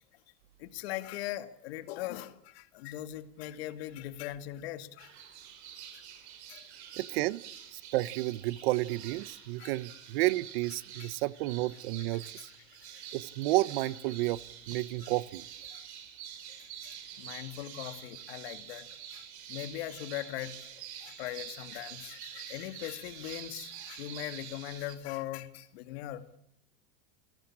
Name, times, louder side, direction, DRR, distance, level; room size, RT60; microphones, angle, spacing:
voice 1, 0.6-5.1 5.9-6.0 6.5-6.7 9.6-9.8 10.9-11.1 12.1-13.1 15.0-15.1 15.7-15.8 16.6-26.2, left 14 dB, 65° left, 2.4 m, -41 dB
sound 1, 5.0-25.0, right 9 dB, 80° right, 5.6 m, -47 dB
voice 2, 7.0-7.4 7.7-12.5 13.1-15.4, right 18 dB, 60° right, 1.0 m, -31 dB
29.0 x 18.0 x 8.7 m
supercardioid pair, 155°, 33 cm